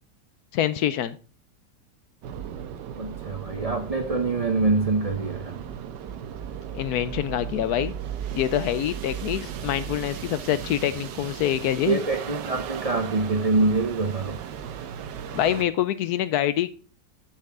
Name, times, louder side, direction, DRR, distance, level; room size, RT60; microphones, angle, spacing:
voice 1, 0.5-1.2 6.7-7.9 8.3-12.0 15.3-16.7, left 11 dB, 70° left, 1.0 m, -25 dB
sound 1, 2.2-15.6, right 8 dB, 85° right, 1.5 m, -36 dB
voice 2, 3.0-5.6 11.8-14.4, right 3 dB, 60° right, 0.3 m, -25 dB
7.6 x 7.2 x 3.5 m
omnidirectional pair, 1.8 m